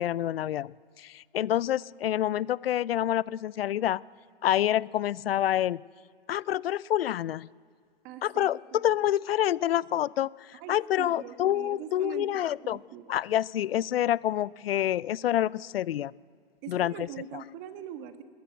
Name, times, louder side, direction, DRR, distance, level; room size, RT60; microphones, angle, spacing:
voice 1, 0.0-4.0 4.4-5.8 6.3-7.5 8.2-12.8 13.1-16.1 16.7-17.1, left 12 dB, 75° left, 23 dB, 0.5 m, -27 dB
voice 2, 8.0-8.8 10.5-13.2 16.6-18.2, right 9 dB, 30° right, 9 dB, 1.3 m, -42 dB
19.5 x 15.5 x 9.2 m, 2.1 s
hypercardioid pair, 145°, 29 cm